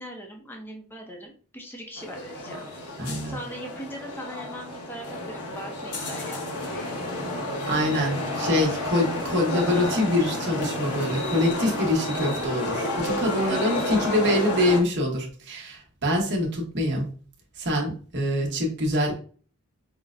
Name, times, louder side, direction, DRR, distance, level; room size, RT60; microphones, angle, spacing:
voice 1, 0.0-2.7 3.3-7.0 13.4-13.9, equal, 10° left, 1 dB, 0.6 m, -40 dB
sound 1, 2.0-14.8, left 1 dB, 85° left, 0.9 m, -30 dB
voice 2, 3.0-3.3 7.7-17.1 17.6-19.1, left 1 dB, 50° right, 0 dB, 1.1 m, -25 dB
5.4 x 2.1 x 2.5 m, 0.42 s
head